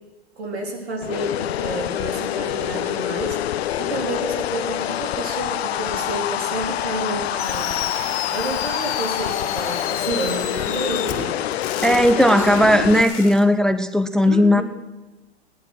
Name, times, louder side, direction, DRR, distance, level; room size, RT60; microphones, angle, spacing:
voice 1, 0.4-7.7 8.3-12.5 14.2-14.6, right 2 dB, 80° right, 1 dB, 4.2 m, -30 dB
sound 1, 1.0-13.0, left 12 dB, 75° left, 0.7 m, -26 dB
Fireworks, 7.4-13.4, left 8 dB, 45° left, 2.7 m, -32 dB
voice 2, 11.8-14.6, left 1 dB, ahead, 11 dB, 0.6 m, -16 dB
18.5 x 10.5 x 6.4 m, 1.1 s
hypercardioid pair, 105°, 31 cm